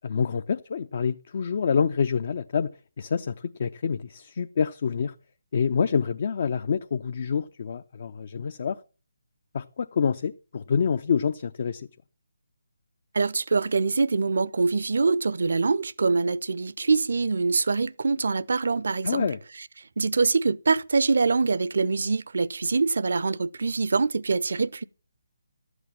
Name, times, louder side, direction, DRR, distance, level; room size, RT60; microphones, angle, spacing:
voice 1, 0.0-2.7 3.0-5.1 5.5-8.8 9.5-11.9 19.0-19.4, left 6 dB, 45° left, 0.5 m, -27 dB
voice 2, 13.1-19.3 20.0-24.8, right 4 dB, 60° right, 0.6 m, -24 dB
12.5 x 8.1 x 7.2 m
figure-of-eight pair, 145°, 0 cm